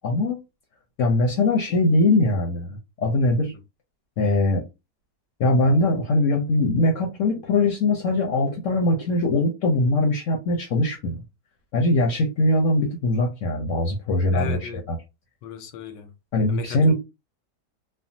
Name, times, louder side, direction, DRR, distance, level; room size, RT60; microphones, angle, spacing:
voice 1, 0.0-0.4 1.0-3.5 4.2-4.6 5.4-11.2 11.7-15.0 16.3-16.9, left 2 dB, 65° left, 0.8 m, -21 dB
voice 2, 14.3-14.8 15.4-16.1 16.5-16.9, left 6 dB, 90° left, 1.3 m, -35 dB
3.3 x 2.1 x 2.6 m
omnidirectional pair, 1.9 m